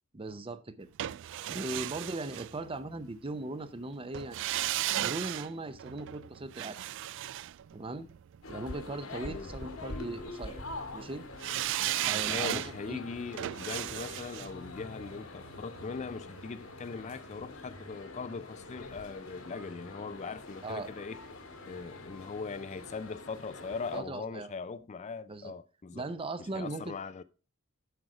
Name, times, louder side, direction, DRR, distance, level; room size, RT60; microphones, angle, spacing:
voice 1, 0.1-0.9 1.5-4.5 5.0-6.8 7.7-8.1 8.5-10.6 10.9-11.2 12.0-13.0 20.6-20.9 23.9-24.5 25.3-25.5 25.9-26.8, right 2 dB, 25° right, 0.7 m, -39 dB
sound 1, 1.0-3.1 4.1-8.4 11.4-16.4 16.7-16.8, right 14 dB, 60° right, 0.3 m, -36 dB
sound 2, 8.4-24.0, left 2 dB, 75° left, 1.8 m, -45 dB
voice 2, 12.3-21.2 21.7-26.1 26.4-27.2, left 4 dB, 35° left, 0.4 m, -40 dB
8.0 x 6.3 x 4.9 m
head